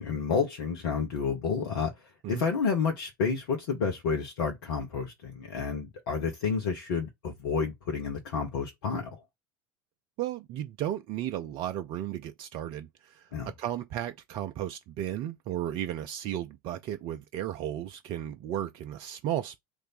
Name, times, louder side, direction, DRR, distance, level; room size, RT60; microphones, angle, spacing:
voice 1, 0.0-9.2 13.3-13.5, left 5 dB, 65° left, 0.8 m, -30 dB
voice 2, 10.2-13.3 13.6-19.6, right 11 dB, 45° right, 0.4 m, -34 dB
3.1 x 2.6 x 4.0 m
figure-of-eight pair, 70°, 12 cm